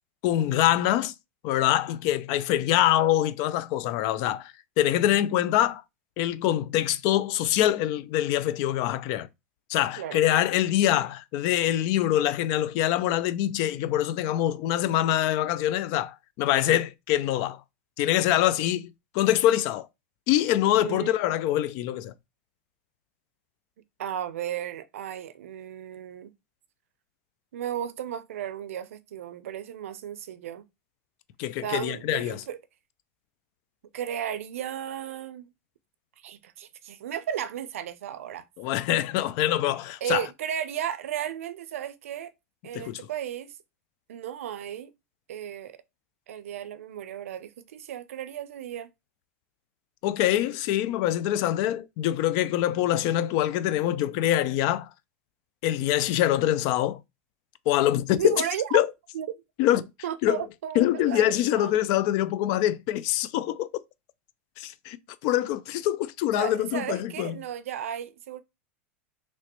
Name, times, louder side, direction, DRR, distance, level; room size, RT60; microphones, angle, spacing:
voice 1, 0.2-1.1 1.4-4.5 4.8-5.8 6.2-9.3 9.7-17.6 18.0-19.9 20.3-22.1 31.4-32.4 38.6-40.3 42.7-43.0 50.0-54.9 55.6-57.0 57.7-58.4 58.7-58.9 59.6-59.9 60.2-60.4 60.8-63.7 64.6-65.0 65.2-67.3, left 13 dB, 55° left, 0.4 m, -24 dB
voice 2, 20.8-21.1 24.0-26.3 27.5-30.6 31.6-32.6 33.9-35.5 36.2-38.4 40.0-42.3 42.6-43.6 44.1-44.9 45.3-45.8 46.3-48.9 58.1-58.8 59.1-59.3 60.0-61.7 66.4-68.4, right 10 dB, 85° right, 0.5 m, -34 dB
3.1 x 3.0 x 2.9 m
supercardioid pair, 115°, 7 cm